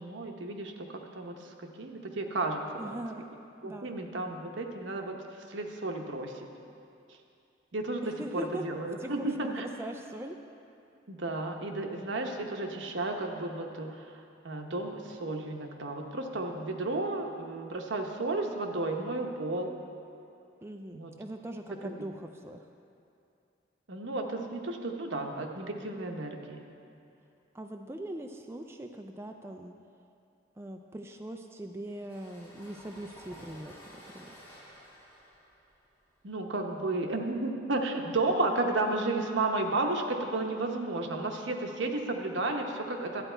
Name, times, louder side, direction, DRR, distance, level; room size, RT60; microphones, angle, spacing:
voice 1, 0.0-3.0 3.6-5.1 5.5-6.3 7.7-9.7 11.1-19.7 20.9-21.1 21.8-21.9 23.9-26.6 36.2-43.2, right 2 dB, 75° right, 3 dB, 0.9 m, -33 dB
voice 2, 2.8-3.3 3.6-3.9 8.0-8.6 9.0-10.4 20.6-22.7 27.5-29.7 30.6-34.3, right 1 dB, 15° right, 4 dB, 0.3 m, -41 dB
sound 1, 31.8-37.3, equal, 15° left, 2.3 m, -53 dB
11.5 x 9.0 x 4.5 m, 2.6 s
head